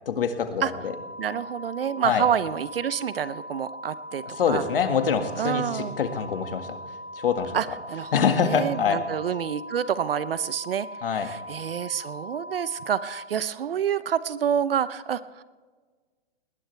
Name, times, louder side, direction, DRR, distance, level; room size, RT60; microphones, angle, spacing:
voice 1, 0.1-0.9 2.0-2.2 4.4-6.8 7.2-7.5 8.1-9.0 11.0-11.3, left 7 dB, 60° left, 7 dB, 1.9 m, -25 dB
sound 1, 0.7-13.3, equal, 80° right, 2.4 m, -40 dB
voice 2, 1.2-4.6 5.4-6.0 7.5-10.9 11.1-15.4, right 8 dB, 65° right, 16 dB, 0.7 m, -28 dB
20.0 x 18.5 x 3.4 m, 1.5 s
hypercardioid pair, 180°, 31 cm